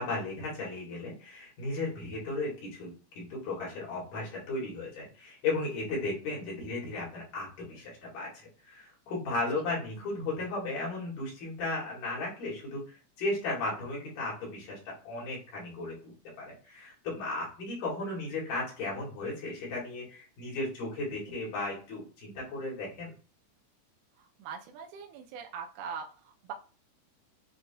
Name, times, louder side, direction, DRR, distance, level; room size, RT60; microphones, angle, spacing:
voice 1, 0.0-14.8 15.0-16.1 16.4-23.1, left 2 dB, 85° left, -4 dB, 3.5 m, -35 dB
voice 2, 24.2-26.5, right 6 dB, 80° right, 1 dB, 1.9 m, -42 dB
7.5 x 2.8 x 2.2 m, 0.37 s
omnidirectional pair, 3.6 m